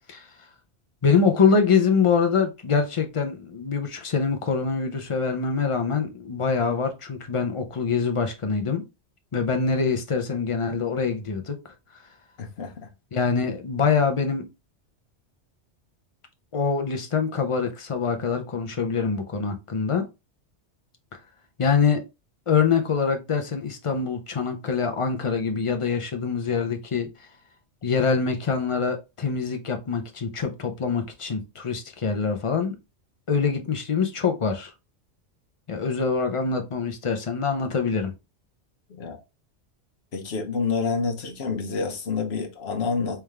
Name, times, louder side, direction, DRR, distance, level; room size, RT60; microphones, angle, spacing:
voice 1, 1.0-8.8 9.3-11.6 13.1-14.5 16.5-20.0 21.6-22.0 22.5-27.3 27.8-32.8 33.3-34.7 35.7-38.1, left 5 dB, 35° left, 0.6 m, -24 dB
voice 2, 12.4-12.9 38.9-39.2 40.1-43.2, left 4 dB, 65° left, 1.1 m, -28 dB
3.5 x 3.5 x 3.2 m
omnidirectional pair, 1.2 m